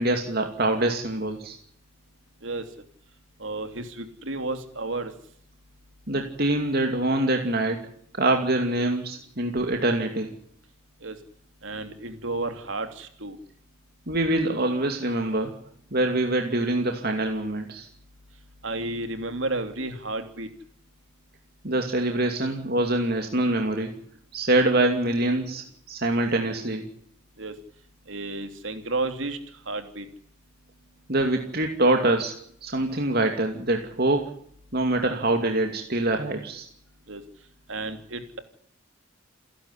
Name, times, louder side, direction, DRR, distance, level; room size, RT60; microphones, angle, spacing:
voice 1, 0.0-1.6 6.1-7.9 8.1-10.3 14.1-15.6 15.9-17.9 21.6-23.9 24.3-26.8 31.1-32.3 32.6-34.3 34.7-36.7, right 2 dB, 50° right, 3 dB, 2.6 m, -24 dB
voice 2, 3.4-5.1 11.0-11.2 11.6-13.4 18.6-20.5 27.4-27.5 28.1-29.4 29.7-30.1 37.1-37.2 37.7-38.4, right 2 dB, 65° right, 7 dB, 3.2 m, -32 dB
29.0 x 11.5 x 9.9 m, 0.64 s
head